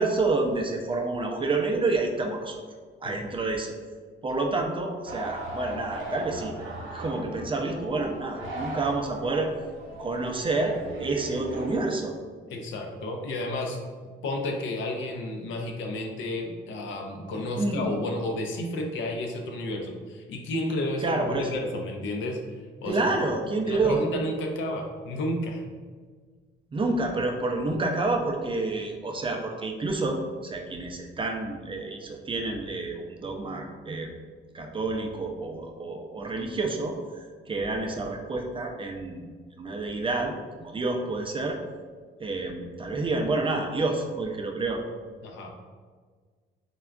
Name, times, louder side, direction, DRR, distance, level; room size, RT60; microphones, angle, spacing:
voice 1, 0.0-2.6 3.0-3.7 4.2-9.5 10.0-12.2 17.6-17.9 21.0-21.5 22.9-24.0 26.7-34.1 34.5-39.2 39.6-40.3 40.6-41.6 42.2-44.8, right 3 dB, 25° right, 2 dB, 0.4 m, -29 dB
sound 1, 5.1-11.8, right 2 dB, 80° right, 0.6 m, -38 dB
voice 2, 12.5-22.4 22.8-23.1 23.7-25.6 45.2-45.5, left 1 dB, 75° left, 2 dB, 0.5 m, -32 dB
3.4 x 2.2 x 2.3 m, 1.5 s
cardioid pair, 90°, 20 cm